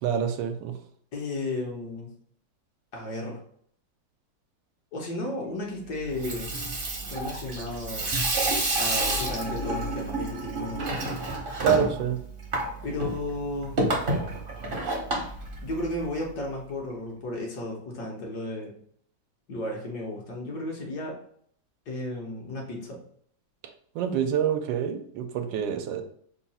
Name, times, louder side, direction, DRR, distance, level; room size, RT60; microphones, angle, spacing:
voice 1, 0.0-0.8 11.6-12.2 23.6-26.0, right 8 dB, 85° right, 7 dB, 1.3 m, -27 dB
voice 2, 1.1-2.1 2.9-3.4 4.9-6.5 7.0-8.1 8.7-11.2 12.8-13.8 15.6-18.7 19.5-21.2 21.9-23.0, left 1 dB, 65° left, -1 dB, 1.5 m, -34 dB
Water tap faucet / Sink (filling or washing), 6.0-16.2, right 2 dB, 45° right, 0.8 m, -30 dB
3.6 x 2.3 x 4.0 m, 0.63 s
omnidirectional pair, 1.9 m